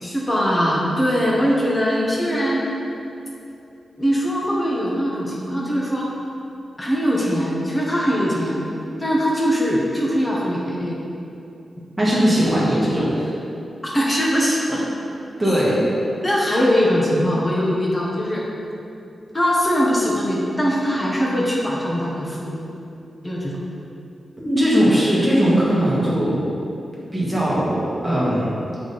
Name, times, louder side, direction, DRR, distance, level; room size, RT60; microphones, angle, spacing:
voice 1, 0.0-2.7 4.0-6.1 6.8-8.6 9.0-11.0 13.8-14.8 16.2-18.4 19.3-22.6 23.2-23.6, equal, 15° left, -4 dB, 1.2 m, -21 dB
voice 2, 12.0-13.3 15.4-15.8 24.4-26.4 27.1-28.5, equal, 10° right, -8 dB, 1.7 m, -19 dB
7.6 x 5.1 x 4.2 m, 2.8 s
wide cardioid pair, 160°, 0 cm